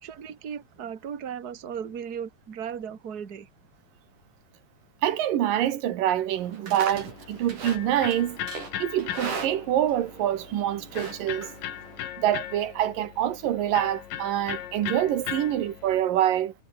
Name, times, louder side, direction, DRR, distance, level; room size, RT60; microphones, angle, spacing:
voice 1, 0.0-3.5, right 8 dB, 35° right, 2.1 m, -36 dB
voice 2, 5.0-8.4 8.8-11.5 12.2-16.5, right 11 dB, 85° right, 3.3 m, -26 dB
Livestock farm animals working animals, 6.4-12.1, right 5 dB, 70° right, 6.3 m, -39 dB
Electric guitar, 6.9-16.0, left 11 dB, 90° left, 3.5 m, -38 dB
omnidirectional pair, 3.8 m